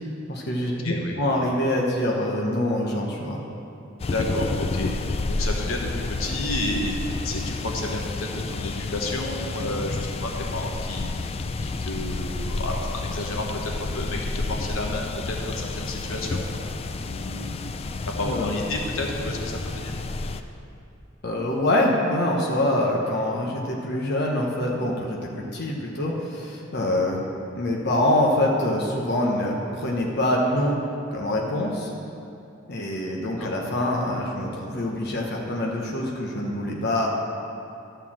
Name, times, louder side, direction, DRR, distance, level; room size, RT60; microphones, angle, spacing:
voice 1, 0.3-3.4 18.2-18.5 21.2-27.2 27.6-30.8 31.1-31.9 32.7-37.1, left 1 dB, 55° left, -1 dB, 1.0 m, -25 dB
voice 2, 0.8-1.1 4.0-4.9 5.3-6.9 7.2-11.1 11.6-16.4 17.1-17.7 18.2-19.9 33.4-33.5, left 2 dB, 85° left, 0 dB, 1.2 m, -31 dB
sound 1, 4.0-20.4, left 3 dB, 30° left, 0.3 m, -30 dB
12.0 x 4.6 x 7.2 m, 2.7 s
head